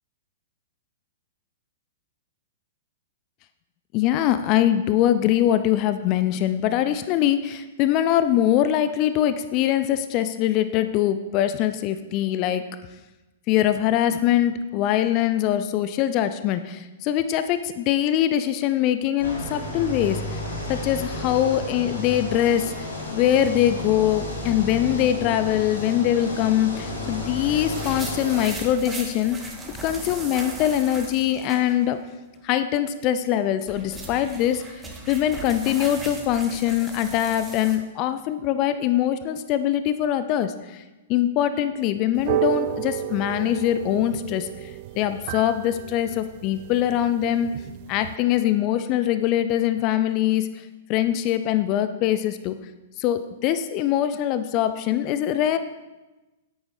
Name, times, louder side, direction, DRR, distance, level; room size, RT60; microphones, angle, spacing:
voice 1, 3.9-12.6 13.5-20.4 20.7-22.7 23.1-29.5 29.8-32.0 32.4-40.8 41.1-44.7 45.0-47.5 47.9-50.5 50.9-52.6 53.0-55.6, left 11 dB, 40° left, 11 dB, 0.6 m, -23 dB
sound 1, 19.2-28.4, left 1 dB, 85° left, 3.7 m, -32 dB
sound 2, 27.6-32.1 32.4-32.5 33.4-37.8, right 2 dB, 10° right, 2.0 m, -38 dB
Piano Chord G, 42.2-48.2, right 14 dB, 50° right, 0.4 m, -32 dB
10.0 x 8.8 x 4.9 m, 1.1 s
figure-of-eight pair, 110°, 0 cm